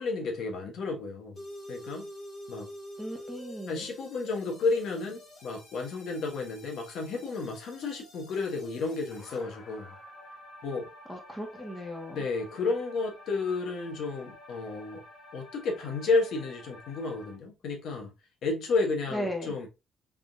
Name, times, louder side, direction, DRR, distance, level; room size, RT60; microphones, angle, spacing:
voice 1, 0.0-1.4 1.7-2.1 2.5-2.7 3.7-9.9 10.6-10.9 12.1-15.0 15.3-18.1 18.4-19.7, left 3 dB, 75° left, 1.1 m, -31 dB
sound 1, 1.4-17.4, left 1 dB, 50° left, 2.4 m, -49 dB
voice 2, 3.0-3.9 11.1-12.2 19.1-19.5, equal, 5° left, 1.3 m, -36 dB
3.6 x 3.5 x 2.6 m
cardioid pair, 130°, 0 cm